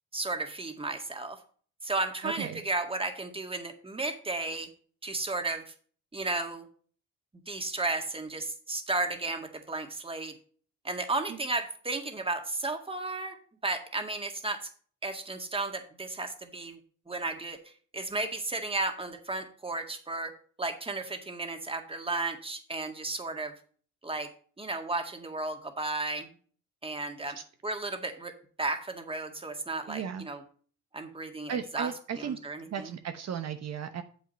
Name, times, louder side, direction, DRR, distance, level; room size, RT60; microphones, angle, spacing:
voice 1, 0.1-1.4 1.8-4.7 5.0-5.6 6.1-6.7 7.5-10.3 10.8-13.4 13.6-14.7 15.0-16.8 17.1-17.6 17.9-20.3 20.6-23.5 24.0-24.3 24.6-26.3 26.8-27.4 27.6-28.3 28.6-30.4 30.9-31.9 32.2-32.9, right 2 dB, 20° right, 6 dB, 1.9 m, -33 dB
voice 2, 2.2-2.6 11.3-11.4 29.9-30.3 31.5-32.4 32.7-34.0, right 8 dB, 60° right, 8 dB, 1.0 m, -35 dB
9.1 x 7.5 x 4.2 m, 0.43 s
cardioid pair, 90°, 30 cm